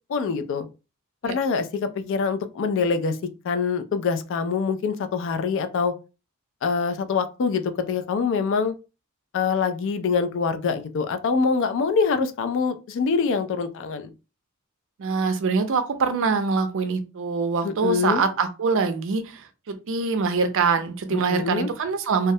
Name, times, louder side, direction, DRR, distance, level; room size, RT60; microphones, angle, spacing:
voice 1, 0.1-0.7 1.2-3.2 3.4-5.9 6.6-8.7 9.3-14.1 17.6-18.2 21.1-21.7, left 5 dB, 60° left, 0.3 m, -24 dB
voice 2, 15.0-19.2 19.7-22.3, right 5 dB, 65° right, 0.4 m, -24 dB
2.2 x 2.0 x 2.7 m
head